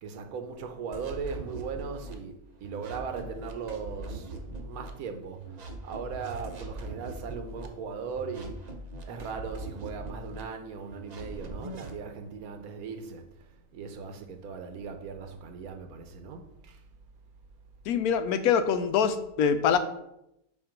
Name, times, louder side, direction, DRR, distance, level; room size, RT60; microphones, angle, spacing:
voice 1, 0.0-4.3 4.6-8.6 9.0-13.3 13.7-16.8, right 5 dB, 85° right, 1.2 m, -38 dB
sound 1, 0.9-2.1 2.6-4.9 5.4-7.7 8.1-10.4 10.9-11.9, right 2 dB, 45° right, 0.5 m, -41 dB
voice 2, 17.9-19.8, left 7 dB, 90° left, 1.1 m, -24 dB
7.4 x 2.6 x 5.1 m
omnidirectional pair, 1.5 m